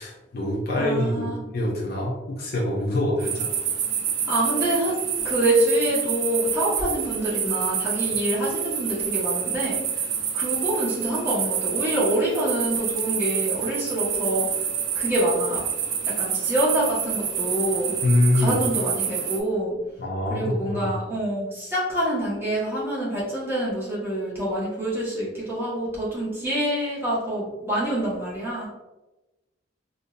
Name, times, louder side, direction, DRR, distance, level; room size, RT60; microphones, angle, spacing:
voice 1, 0.0-1.3 1.5-3.5 18.0-18.6 20.0-20.9, left 1 dB, 55° left, -3 dB, 0.6 m, -24 dB
voice 2, 0.8-1.5 4.3-4.9 5.2-9.8 10.3-14.5 14.9-15.6 16.2-17.9 18.3-19.8 20.3-28.7, right 1 dB, 15° right, -8 dB, 1.3 m, -26 dB
sound 1, 3.2-19.4, right 8 dB, 75° right, 0.5 m, -28 dB
3.7 x 2.6 x 2.6 m, 1.1 s
head